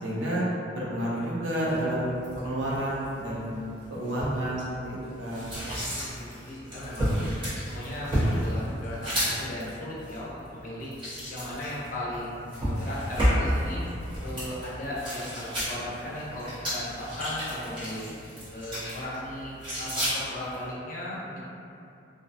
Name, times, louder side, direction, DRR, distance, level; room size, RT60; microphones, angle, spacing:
voice 1, 0.0-3.5 3.9-5.5, right 1 dB, 85° right, -7 dB, 0.6 m, -30 dB
sound 1, 1.6-20.7, equal, 25° right, 0.9 m, -32 dB
voice 2, 5.9-7.2 7.6-10.9 11.3-13.8 14.2-18.1 18.5-21.4, left 1 dB, 45° left, -7 dB, 0.5 m, -36 dB
2.5 x 2.3 x 2.4 m, 2.7 s
head